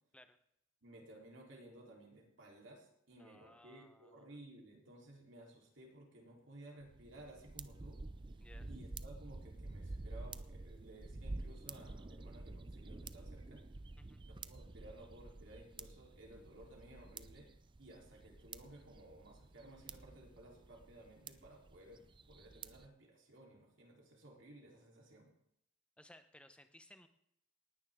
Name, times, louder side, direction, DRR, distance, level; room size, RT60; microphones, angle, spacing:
voice 1, 0.8-8.0 8.7-13.6 14.3-17.5 17.8-25.3, right 1 dB, 70° right, -1 dB, 3.8 m, -57 dB
voice 2, 3.2-4.3 8.4-8.7 14.0-14.2 26.0-27.1, left 1 dB, 5° left, 9 dB, 0.9 m, -61 dB
sound 1, 6.8-22.9, right 3 dB, 25° right, 0.5 m, -50 dB
18.5 x 10.5 x 3.7 m, 0.73 s
head